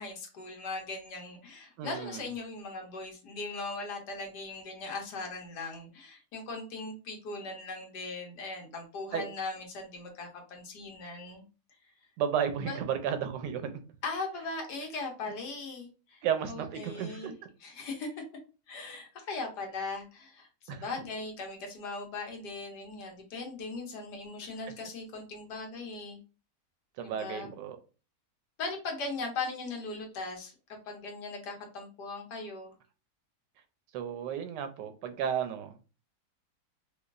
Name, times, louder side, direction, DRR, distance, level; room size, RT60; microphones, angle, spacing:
voice 1, 0.0-11.4 12.6-12.8 14.0-16.2 16.5-17.3 17.6-18.2 18.7-26.2 27.0-27.5 28.6-30.5 30.9-32.7, left 3 dB, 75° left, 1.4 m, -39 dB
voice 2, 1.8-2.2 9.1-9.2 12.2-13.8 16.2-17.3 20.7-20.9 27.0-27.8 33.9-35.7, right 8 dB, 90° right, 1.3 m, -33 dB
4.8 x 2.3 x 2.4 m
omnidirectional pair, 1.8 m